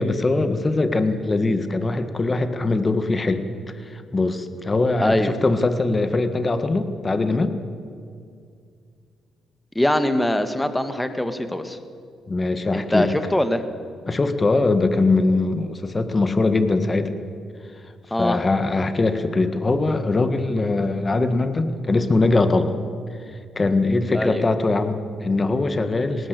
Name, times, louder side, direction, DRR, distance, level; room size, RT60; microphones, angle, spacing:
voice 1, 0.0-3.4 3.9-7.5 12.3-13.1 14.1-17.1 18.2-22.7 23.6-26.3, left 3 dB, 25° left, 9 dB, 1.8 m, -21 dB
voice 2, 5.0-5.3 9.8-11.8 12.7-13.6 18.1-18.4 24.1-24.4, left 1 dB, 10° left, 9 dB, 1.7 m, -22 dB
19.5 x 18.0 x 8.3 m, 2.3 s
cardioid pair, 90°, 0 cm